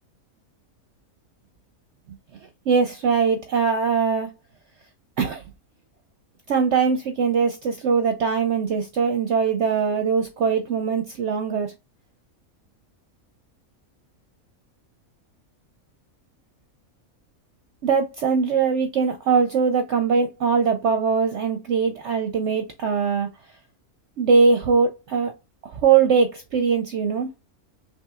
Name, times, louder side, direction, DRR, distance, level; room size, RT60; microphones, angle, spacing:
voice 1, 2.7-4.3 5.2-5.4 6.5-11.7 17.8-23.3 24.2-25.3 25.6-27.3, right 5 dB, 60° right, 0.9 m, -21 dB
5.7 x 3.3 x 2.3 m
omnidirectional pair, 1.5 m